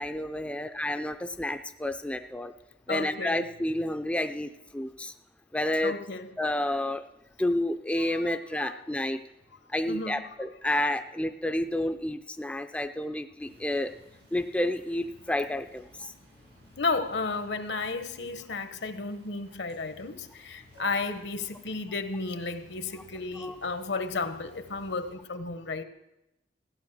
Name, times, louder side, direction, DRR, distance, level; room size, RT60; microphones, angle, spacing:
voice 1, 0.0-2.5 2.9-5.1 5.5-5.9 6.4-7.0 7.4-9.2 9.7-13.9 14.3-16.1 23.4-23.6, left 1 dB, 5° left, 8 dB, 0.4 m, -30 dB
voice 2, 2.9-3.5 5.8-6.3 8.1-8.8 9.9-10.2 16.8-25.8, left 3 dB, 70° left, 10 dB, 1.0 m, -33 dB
sound 1, 13.4-25.1, left 1 dB, 90° right, 6.9 m, -57 dB
15.5 x 9.2 x 6.6 m, 0.92 s
head